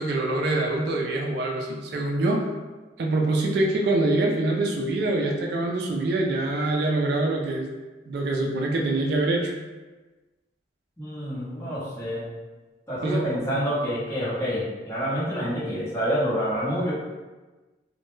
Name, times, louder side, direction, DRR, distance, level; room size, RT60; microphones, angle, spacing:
voice 1, 0.0-2.5 3.0-7.7 8.1-9.5 13.0-13.3, right 2 dB, 60° right, 0 dB, 0.3 m, -25 dB
voice 2, 11.0-12.3 12.9-16.9, equal, 15° left, -10 dB, 0.8 m, -27 dB
2.2 x 2.1 x 3.0 m, 1.2 s
head